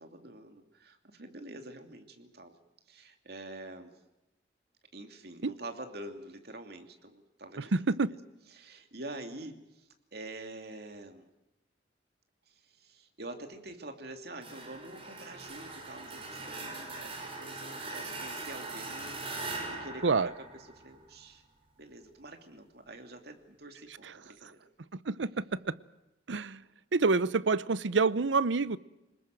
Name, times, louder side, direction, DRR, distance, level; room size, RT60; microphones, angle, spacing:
voice 1, 0.0-2.5 2.9-3.9 4.9-7.7 8.0-8.2 8.5-11.3 12.5-21.4 21.8-24.6, right 2 dB, 60° right, 6 dB, 2.8 m, -46 dB
voice 2, 7.7-8.1 20.0-20.3 25.1-25.4 26.3-26.6 26.9-28.8, right 4 dB, 85° right, 18 dB, 0.7 m, -27 dB
sound 1, 14.4-21.1, right 3 dB, 30° right, 5.7 m, -41 dB
25.5 x 20.5 x 7.7 m, 0.94 s
head